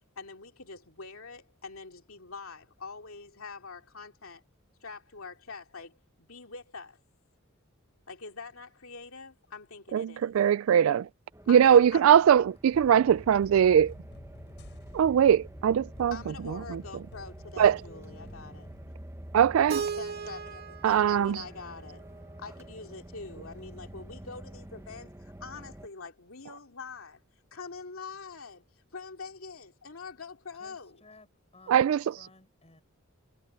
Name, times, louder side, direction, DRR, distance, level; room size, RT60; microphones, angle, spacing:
voice 1, 0.2-4.4 4.8-7.0 8.1-10.4 11.5-12.0 16.1-18.7 19.7-22.1 22.4-27.2 27.5-28.6 28.9-31.0, left 4 dB, 75° left, 2.6 m, -44 dB
voice 2, 9.9-11.1 11.5-13.9 14.9-16.2 17.6-17.8 19.3-19.8 20.8-21.4 31.7-32.0, right 9 dB, 70° right, 0.3 m, -21 dB
sound 1, 11.3-25.9, right 1 dB, 15° right, 1.1 m, -48 dB
voice 3, 11.8-13.4 23.6-24.0 30.6-31.3 31.5-32.8, left 2 dB, 30° left, 6.8 m, -58 dB
sound 2, 12.7-18.9, equal, 55° left, 7.2 m, -50 dB
Keyboard (musical), 19.7-22.6, right 6 dB, 50° right, 2.0 m, -38 dB
head